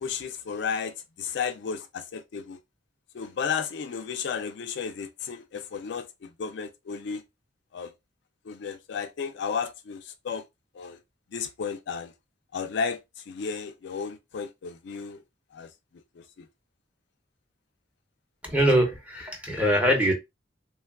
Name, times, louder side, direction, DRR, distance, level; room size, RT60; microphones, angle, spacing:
voice 1, 0.0-2.6 3.1-7.2 7.7-7.9 8.5-10.4 10.7-11.0 11.3-12.1 12.5-13.0 13.3-15.2 15.5-15.7 16.2-16.5, left 6 dB, 65° left, 0.4 m, -33 dB
voice 2, 18.4-20.1, equal, 5° right, 0.7 m, -23 dB
3.2 x 2.2 x 2.2 m
head